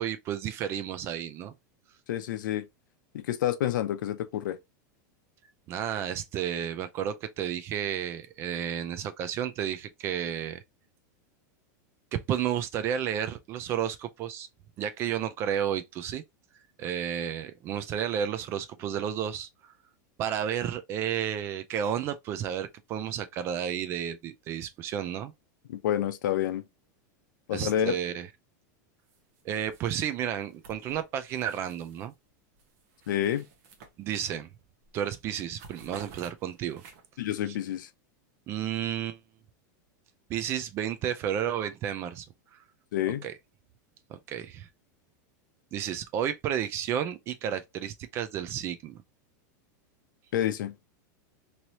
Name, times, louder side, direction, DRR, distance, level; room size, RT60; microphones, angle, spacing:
voice 1, 0.0-1.5 5.7-10.6 12.1-14.5 14.8-16.2 16.8-19.5 20.2-25.3 27.5-28.3 29.4-32.1 34.0-34.5 34.9-36.8 37.5-37.6 38.5-39.2 40.3-42.3 42.5-42.6 43.2-43.3 44.1-44.7 45.7-49.0, right 9 dB, 25° right, 0.3 m, -32 dB
voice 2, 2.1-2.6 3.1-4.6 25.7-26.6 27.5-28.0 33.1-33.5 37.2-37.9 42.9-43.3 50.3-50.7, left 11 dB, 80° left, 0.6 m, -28 dB
sound 1, 29.1-29.4 29.7-32.2 32.6-34.5 34.8-35.0 35.3-37.3, right 5 dB, 50° right, 0.9 m, -52 dB
3.1 x 2.7 x 2.8 m
supercardioid pair, 170°, 10 cm